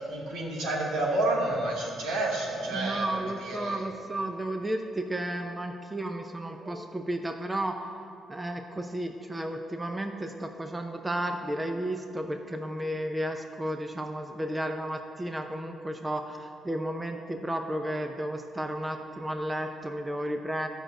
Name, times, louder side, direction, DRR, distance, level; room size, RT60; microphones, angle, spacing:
voice 1, 0.1-3.8, right 2 dB, 85° right, -4 dB, 2.9 m, -30 dB
voice 2, 2.7-7.8 8.3-20.7, right 1 dB, 15° right, 5 dB, 0.8 m, -33 dB
12.0 x 6.3 x 7.9 m, 2.7 s
cardioid pair, 90°, 0 cm